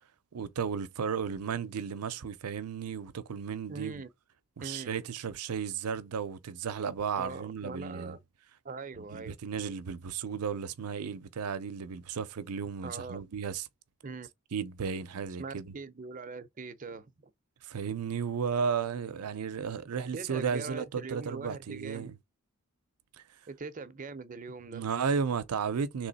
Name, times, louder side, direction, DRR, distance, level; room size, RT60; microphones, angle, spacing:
voice 1, 0.3-4.0 4.6-8.1 9.1-13.7 14.5-15.7 17.6-22.1 24.7-26.1, right 6 dB, 90° right, 0.5 m, -34 dB
voice 2, 3.7-4.1 4.6-4.9 7.2-8.2 8.6-9.3 12.8-13.2 14.0-14.3 15.4-17.3 20.1-22.1 23.5-24.9, right 4 dB, 35° right, 0.5 m, -42 dB
3.4 x 3.0 x 4.0 m
head